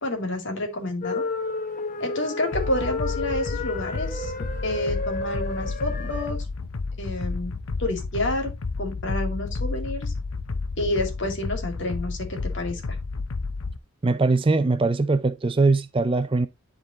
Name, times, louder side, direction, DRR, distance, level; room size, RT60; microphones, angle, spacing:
voice 1, 0.0-1.2 2.0-4.3 4.6-6.4 7.0-7.5 7.8-8.5 8.8-10.1 10.8-12.8, left 1 dB, 55° left, 2.3 m, -29 dB
sound 1, 1.0-6.3, left 3 dB, 35° left, 0.9 m, -32 dB
sound 2, 2.5-13.8, left 3 dB, 70° left, 0.7 m, -31 dB
voice 2, 14.0-16.5, right 3 dB, 25° right, 0.4 m, -21 dB
10.5 x 3.9 x 3.9 m
head